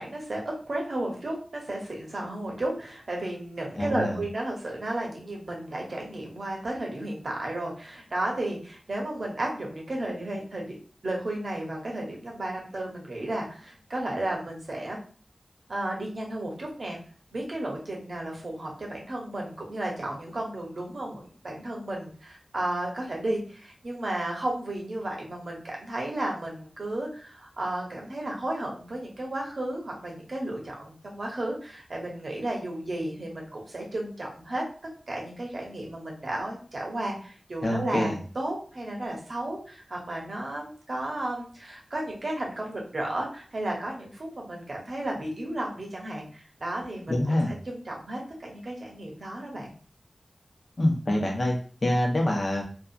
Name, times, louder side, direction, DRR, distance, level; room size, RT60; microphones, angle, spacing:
voice 1, 0.0-10.8 11.0-15.0 15.7-17.0 17.3-34.6 35.1-49.7, right 1 dB, 70° right, -1 dB, 0.9 m, -33 dB
voice 2, 3.8-4.2 37.6-38.2 47.1-47.5 50.8-51.5 51.8-52.6, left 1 dB, 45° left, 0 dB, 0.9 m, -25 dB
2.7 x 2.4 x 2.5 m, 0.42 s
wide cardioid pair, 65°, 0 cm